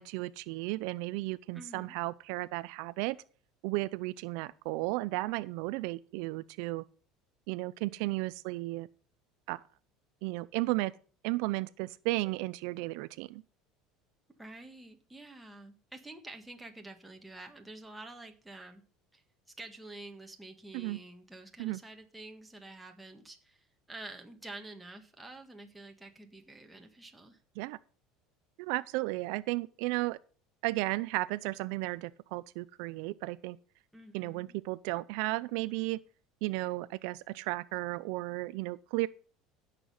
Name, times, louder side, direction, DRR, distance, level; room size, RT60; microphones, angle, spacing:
voice 1, 0.0-3.2 3.6-6.8 7.5-8.9 9.5-9.6 10.2-10.9 11.2-13.4 20.7-21.0 21.6-21.8 27.6-27.8 28.6-30.2 30.6-33.6 34.1-36.0 36.4-39.1, right 21 dB, 70° right, 0.5 m, -34 dB
voice 2, 1.5-1.9 14.4-18.8 19.1-19.2 19.6-27.4 33.9-34.6, right 2 dB, 5° right, 1.6 m, -48 dB
16.0 x 6.7 x 5.6 m
cardioid pair, 150°, 0 cm